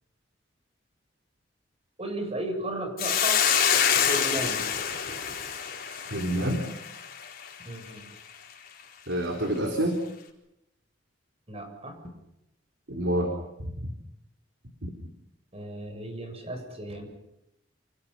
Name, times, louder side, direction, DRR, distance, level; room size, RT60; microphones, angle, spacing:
voice 1, 2.0-3.5 3.9-4.6 7.6-8.1 11.5-12.0 15.5-17.1, right 1 dB, 35° right, 5 dB, 7.4 m, -35 dB
Hiss, 3.0-7.5, left 8 dB, 55° left, 4.3 m, -26 dB
voice 2, 6.1-6.6 9.1-10.0 12.9-13.3 13.6-13.7 14.8-14.9, right 1 dB, 80° right, 3 dB, 4.1 m, -27 dB
30.0 x 28.0 x 5.7 m, 0.84 s
head